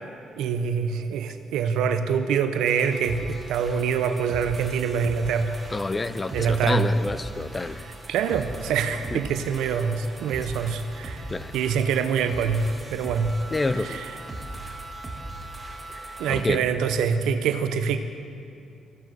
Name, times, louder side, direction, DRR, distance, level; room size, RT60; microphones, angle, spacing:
voice 1, 0.4-5.6 6.3-6.9 8.1-11.3 11.5-13.3 13.8-14.1 16.2-18.0, right 6 dB, 85° right, 9 dB, 0.6 m, -25 dB
sound 1, 2.7-16.4, right 1 dB, 25° right, 1.8 m, -39 dB
voice 2, 5.7-7.8 9.1-9.2 11.3-11.5 13.5-14.0 16.4-16.6, left 2 dB, 25° left, 14 dB, 0.5 m, -27 dB
14.0 x 9.1 x 6.0 m, 2.5 s
cardioid pair, 90°, 0 cm